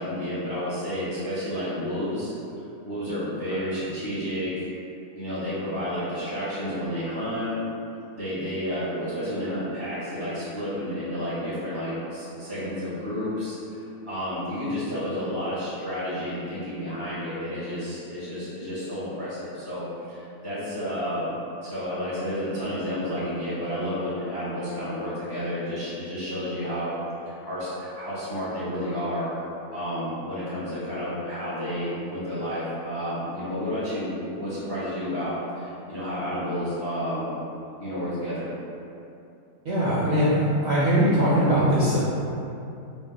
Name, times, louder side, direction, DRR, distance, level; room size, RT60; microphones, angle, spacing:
voice 1, 0.0-2.3 2.8-4.7 5.1-7.5 8.1-13.6 14.1-21.3 21.6-26.9 27.2-37.3 37.8-38.5, equal, 35° left, -11 dB, 0.4 m, -31 dB
voice 2, 39.7-42.0, equal, 70° right, -9 dB, 0.6 m, -21 dB
2.7 x 2.1 x 3.5 m, 2.7 s
omnidirectional pair, 1.6 m